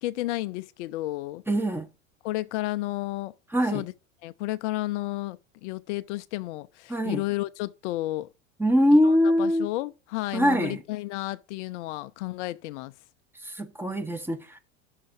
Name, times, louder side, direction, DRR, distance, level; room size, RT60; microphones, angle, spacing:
voice 1, 0.0-1.4 2.2-3.3 3.7-3.9 4.2-8.3 9.0-12.9, left 18 dB, 60° left, 0.5 m, -32 dB
voice 2, 1.5-1.9 3.5-3.8 6.9-7.2 8.6-9.7 10.3-10.8 13.4-14.6, equal, 5° right, 0.9 m, -23 dB
6.5 x 3.8 x 5.7 m
hypercardioid pair, 85°, 39 cm